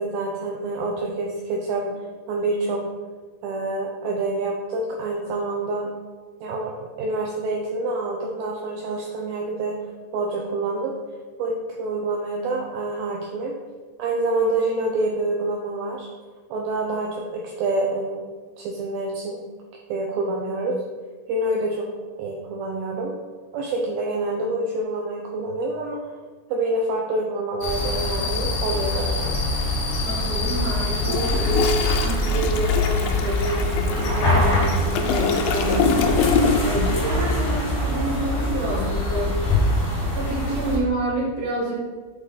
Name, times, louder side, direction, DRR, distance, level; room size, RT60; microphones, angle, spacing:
voice 1, 0.0-2.0 2.3-2.8 3.4-5.9 6.4-6.7 7.0-9.8 10.1-10.9 11.4-13.5 14.0-16.1 16.5-18.2 18.6-19.4 19.9-20.8 21.3-21.9 22.2-23.1 23.5-26.0 26.5-29.3, right 2 dB, 85° right, -1 dB, 2.2 m, -27 dB
sound 1, 27.6-40.8, left 2 dB, 70° left, 2.1 m, -24 dB
voice 2, 30.0-39.5 40.1-41.7, right 2 dB, 55° right, -7 dB, 1.1 m, -28 dB
Toilet flush, 30.9-36.9 37.2-37.4, left 5 dB, 85° left, 2.8 m, -25 dB
7.6 x 3.2 x 3.8 m, 1.4 s
omnidirectional pair, 4.9 m